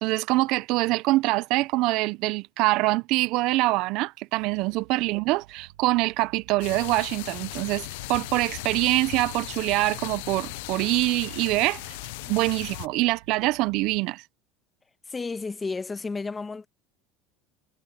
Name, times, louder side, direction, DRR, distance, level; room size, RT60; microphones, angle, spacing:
voice 1, 0.0-12.0 12.3-14.2, right 20 dB, 65° right, 0.6 m, -24 dB
Bass guitar, 4.4-14.0, right 15 dB, 90° right, 2.6 m, -53 dB
sound 1, 6.6-12.9, left 22 dB, 80° left, 0.4 m, -37 dB
voice 2, 15.1-16.7, left 4 dB, 20° left, 1.5 m, -32 dB
supercardioid pair, 115°, 0 cm